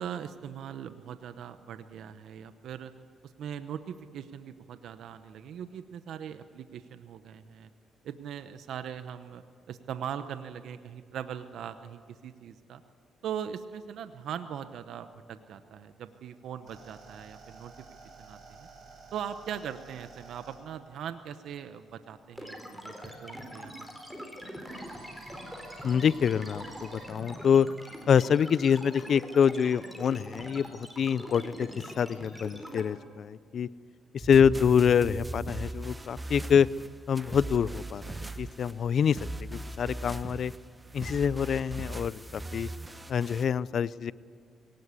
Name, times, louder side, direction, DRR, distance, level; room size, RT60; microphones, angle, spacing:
voice 1, 0.0-2.9 3.2-7.7 8.0-12.8 13.2-17.7 18.2-18.7 19.1-23.9 24.3-24.4, right 8 dB, 75° right, 11 dB, 0.8 m, -40 dB
sound 1, 16.1-22.3 23.3-27.1, right 3 dB, 55° right, 7.2 m, -52 dB
sound 2, 22.4-32.8, equal, ahead, 4.3 m, -43 dB
voice 2, 25.8-27.7 28.1-31.7 32.0-33.7 34.1-36.7 37.1-40.5 40.9-42.7 43.1-44.1, left 7 dB, 55° left, 19 dB, 0.5 m, -26 dB
sound 3, 34.2-43.4, right 2 dB, 15° right, 1.2 m, -39 dB
22.5 x 18.5 x 8.3 m, 2.1 s
cardioid pair, 90°, 0 cm